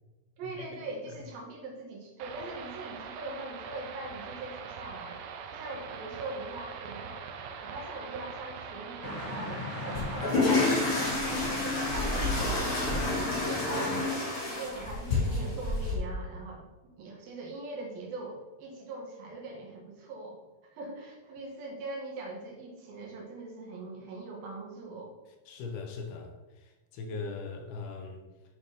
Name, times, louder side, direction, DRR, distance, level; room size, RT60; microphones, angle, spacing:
voice 1, 0.4-5.2 5.5-20.4 20.7-25.1, right 2 dB, 70° right, 0 dB, 3.3 m, -42 dB
sound 1, 2.2-12.2, right 6 dB, 90° right, 1.7 m, -42 dB
sound 2, 9.0-14.1, left 2 dB, 10° left, 1.9 m, -39 dB
sound 3, 9.9-15.9, left 2 dB, 50° left, 4.0 m, -29 dB
voice 2, 25.5-26.3 26.9-28.2, left 4 dB, 75° left, 4 dB, 2.9 m, -39 dB
9.2 x 7.1 x 3.8 m, 1.2 s
omnidirectional pair, 4.6 m